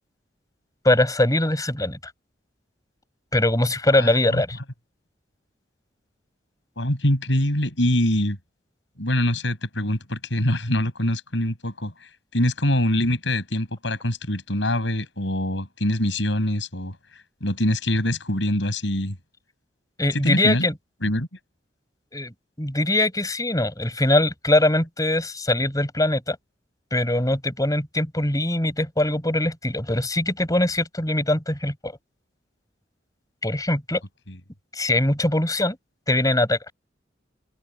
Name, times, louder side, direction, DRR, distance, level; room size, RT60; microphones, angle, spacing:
voice 1, 0.8-2.0 3.3-4.6 20.0-20.7 22.1-26.4 26.9-32.0 33.4-34.0 34.7-35.8 36.1-36.7, left 1 dB, 20° left, 5.4 m, -22 dB
voice 2, 3.9-4.4 6.8-8.4 9.0-11.9 12.3-17.0 17.4-19.2 20.1-20.6 21.0-21.3, left 1 dB, 75° left, 6.0 m, -24 dB
head